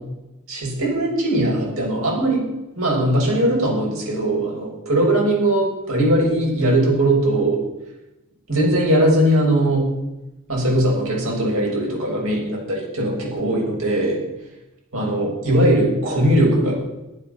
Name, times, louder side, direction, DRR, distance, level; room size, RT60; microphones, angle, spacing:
voice 1, 0.5-2.4 2.8-7.6 8.5-9.9 10.5-14.2 14.9-16.7, right 1 dB, 65° right, -2 dB, 7.4 m, -19 dB
14.0 x 13.0 x 7.3 m, 0.99 s
head